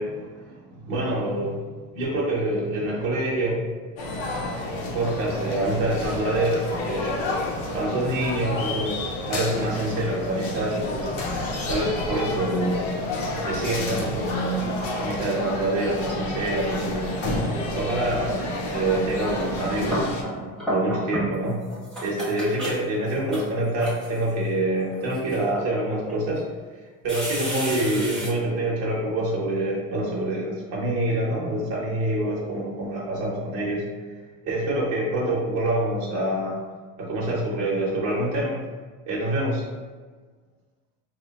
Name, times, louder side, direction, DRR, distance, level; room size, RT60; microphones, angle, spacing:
voice 1, 0.0-1.6 1.9-3.7 4.9-7.2 7.7-11.1 11.7-12.9 13.5-17.1 17.8-20.1 20.7-21.7 22.0-26.4 27.0-33.8 34.4-36.6 37.0-38.6 39.1-39.6, right 1 dB, 35° right, -5 dB, 0.8 m, -26 dB
sound 1, 4.0-20.2, left 2 dB, 80° left, 0.8 m, -30 dB
sound 2, 19.7-21.4 21.7-24.3 24.9-25.4 26.1-26.2 27.1-28.3, equal, ahead, 0.4 m, -31 dB
3.1 x 2.1 x 3.9 m, 1.4 s
cardioid pair, 165°, 39 cm